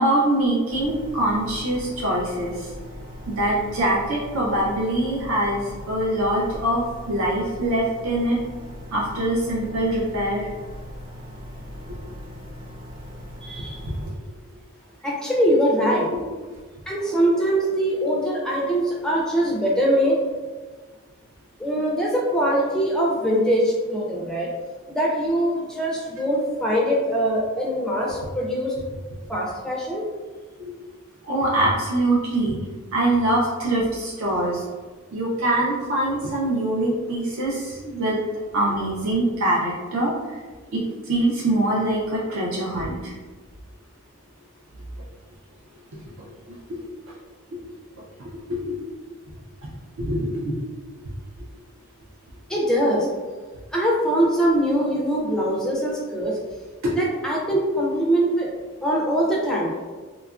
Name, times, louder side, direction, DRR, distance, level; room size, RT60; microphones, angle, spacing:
voice 1, 0.0-2.7 3.3-6.8 7.1-8.4 8.9-10.5 16.1-16.2 31.3-32.6 32.9-34.6 35.1-38.2 38.5-40.4 40.7-43.1 46.5-46.8 48.5-48.7 50.0-50.5, right 1 dB, 65° right, -5 dB, 0.5 m, -23 dB
sound 1, 0.7-14.1, equal, 40° right, 0.8 m, -39 dB
voice 2, 13.4-14.0 15.0-16.1 16.9-20.2 21.6-24.5 24.9-28.7 29.3-30.1 52.5-53.1 53.7-56.4 56.9-58.5 58.8-59.7, equal, 5° left, -4 dB, 0.4 m, -22 dB
2.8 x 2.3 x 2.3 m, 1.4 s
head